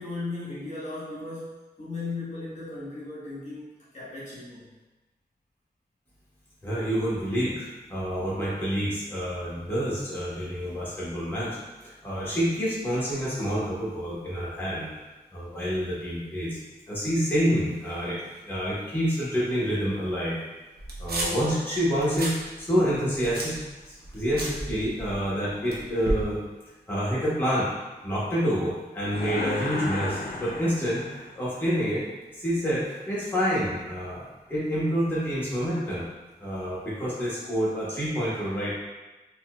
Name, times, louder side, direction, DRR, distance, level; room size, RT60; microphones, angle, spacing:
voice 1, 0.0-1.5 1.8-3.7 3.9-4.7, left 3 dB, 45° left, -9 dB, 1.1 m, -36 dB
voice 2, 6.6-15.0 15.3-16.6 16.9-20.4 21.0-23.6 23.9-26.4 26.9-27.7 28.0-32.0 32.4-36.1 36.4-38.7, equal, 10° left, -8 dB, 1.1 m, -28 dB
sound 1, 20.8-21.5 21.9-22.4 22.7-25.3 25.7-26.2, right 1 dB, 70° right, 0.6 m, -33 dB
sound 2, 29.1-31.4, left 2 dB, 65° left, 0.4 m, -34 dB
4.1 x 2.3 x 2.3 m, 1.1 s
wide cardioid pair, 60°, 17 cm